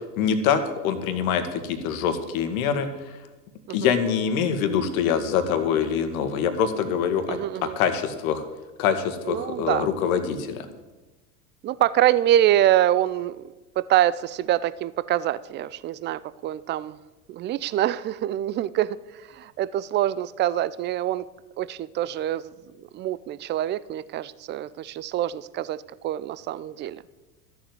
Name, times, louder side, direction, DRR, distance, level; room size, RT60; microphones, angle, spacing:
voice 1, 0.2-3.2 3.7-8.4 8.8-10.7, left 7 dB, 65° left, 8 dB, 1.8 m, -25 dB
voice 2, 7.3-7.7 9.2-9.9 11.6-17.0 17.3-19.0 19.3-21.3 21.6-22.5 22.9-27.0, right 12 dB, 25° right, 18 dB, 0.4 m, -25 dB
13.0 x 7.3 x 8.0 m, 1.1 s
hypercardioid pair, 85°, 46 cm